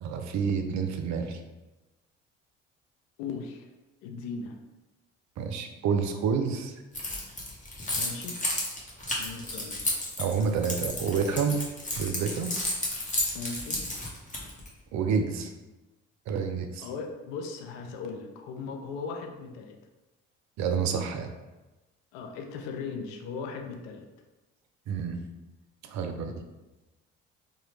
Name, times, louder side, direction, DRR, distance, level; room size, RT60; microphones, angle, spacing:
voice 1, 0.0-1.4 5.4-6.8 10.2-11.6 12.0-12.6 14.9-15.5 16.3-16.9 20.6-21.3 24.9-25.2 25.8-26.3, right 6 dB, 55° right, 6 dB, 0.5 m, -28 dB
voice 2, 3.2-3.7 4.0-4.6 7.9-8.4 9.2-9.8 13.3-13.9 16.8-19.8 22.1-24.1, left 5 dB, 75° left, 3 dB, 0.5 m, -38 dB
Keys jangling, 7.0-14.7, left 1 dB, 25° left, 1.0 m, -32 dB
2.8 x 2.3 x 3.2 m, 1.1 s
hypercardioid pair, 55°, 33 cm